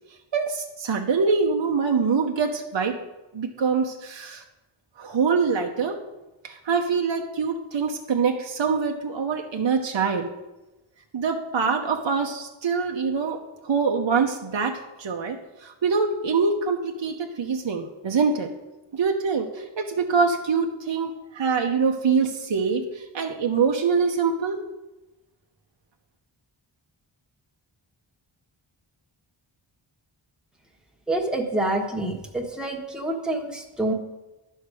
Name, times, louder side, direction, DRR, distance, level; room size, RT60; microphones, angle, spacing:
voice 1, 0.3-3.0 3.3-4.4 5.0-6.0 6.4-10.3 11.1-13.4 13.6-15.4 15.6-18.5 18.9-24.6, right 5 dB, 65° right, 3 dB, 0.9 m, -24 dB
voice 2, 31.1-33.9, right 1 dB, ahead, 0 dB, 1.3 m, -27 dB
12.0 x 5.5 x 4.8 m, 1.0 s
wide cardioid pair, 60°, 49 cm